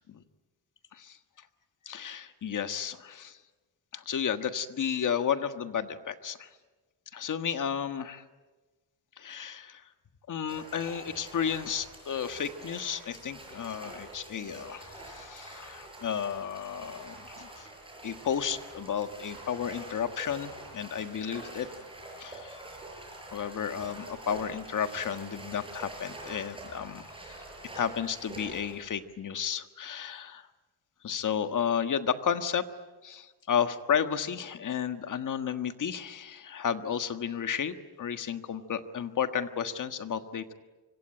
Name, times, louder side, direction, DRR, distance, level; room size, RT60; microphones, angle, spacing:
voice 1, 1.8-3.4 3.9-6.5 7.1-8.2 9.2-9.8 10.3-17.7 18.0-21.7 22.2-22.6 23.3-27.1 27.7-30.5 31.0-32.6 33.0-40.5, left 8 dB, 45° left, 9 dB, 1.5 m, -32 dB
sound 1, 10.5-28.9, right 2 dB, 10° right, 7.4 m, -46 dB
25.5 x 24.5 x 8.9 m, 1.3 s
cardioid pair, 135°, 41 cm